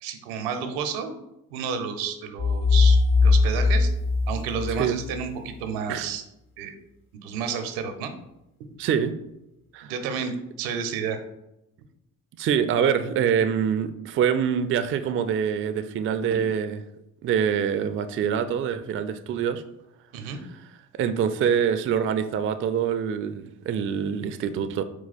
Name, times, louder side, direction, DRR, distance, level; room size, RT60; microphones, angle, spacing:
voice 1, 0.0-1.1 1.5-3.9 4.3-6.2 6.6-6.7 7.2-8.1 9.8-11.2 16.3-16.4 20.1-20.4, right 6 dB, 80° right, 8 dB, 0.7 m, -31 dB
sound 1, 2.4-5.2, left 4 dB, 30° left, 0.5 m, -20 dB
voice 2, 8.8-9.2 9.7-9.9 12.4-16.8 17.2-19.6 21.0-24.8, right 8 dB, 30° right, 10 dB, 0.4 m, -25 dB
4.5 x 2.3 x 4.0 m, 0.87 s
hypercardioid pair, 55°, 44 cm